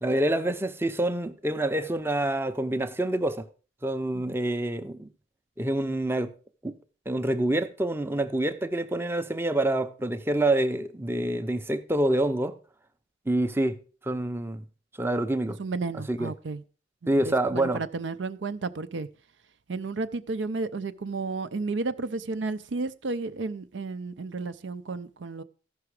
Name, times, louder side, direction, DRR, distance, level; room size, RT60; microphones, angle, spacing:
voice 1, 0.0-3.5 3.8-5.1 5.6-6.3 6.6-6.7 7.1-12.5 13.3-13.8 14.1-14.6 15.0-15.6 16.1-16.3 17.1-17.8, right 1 dB, 10° right, 0.6 m, -27 dB
voice 2, 15.6-16.6 17.0-19.1 19.7-25.4, right 3 dB, 65° right, 0.5 m, -32 dB
14.5 x 5.8 x 4.8 m
head